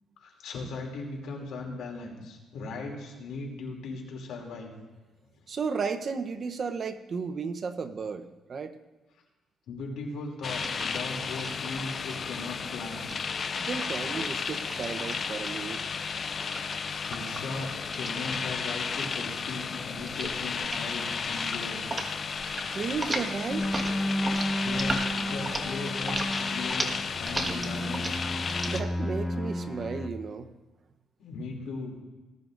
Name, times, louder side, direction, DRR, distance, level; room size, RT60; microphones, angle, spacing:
voice 1, 0.2-4.7 9.7-13.1 17.1-21.8 24.6-28.8 31.2-31.9, left 3 dB, 80° left, 0 dB, 2.8 m, -38 dB
voice 2, 5.5-8.7 13.6-15.8 22.7-23.7 28.7-30.5, right 5 dB, 50° right, 8 dB, 0.8 m, -34 dB
sound 1, 10.4-28.8, left 5 dB, 45° left, 0.5 m, -33 dB
sound 2, 10.6-12.1 13.0-15.5 16.4-18.9 19.2-19.6 20.0-20.4 20.6-20.9 21.2-22.1 22.3-22.7 22.9-28.8, right 2 dB, 20° right, 1.6 m, -37 dB
sound 3, 23.5-30.1, equal, 20° left, 1.3 m, -32 dB
19.0 x 11.0 x 2.6 m, 1.2 s
cardioid pair, 90°, 0 cm